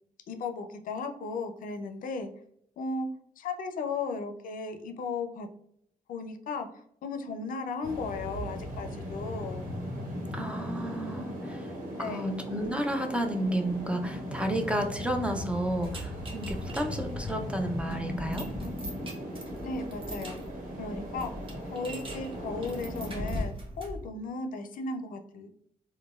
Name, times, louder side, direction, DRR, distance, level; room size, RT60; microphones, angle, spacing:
voice 1, 0.3-2.3 2.8-3.1 3.4-5.5 6.1-9.6 12.0-12.3 19.6-20.4 20.8-21.3 21.7-25.5, left 4 dB, 75° left, 6 dB, 0.4 m, -36 dB
sound 1, 7.8-23.4, equal, 75° right, 1.1 m, -38 dB
voice 2, 10.3-11.7 12.0-18.5, right 1 dB, 10° right, 4 dB, 0.4 m, -31 dB
sound 2, 15.8-24.1, equal, 40° right, 0.8 m, -41 dB
3.9 x 2.1 x 2.3 m, 0.71 s
cardioid pair, 100°, 14 cm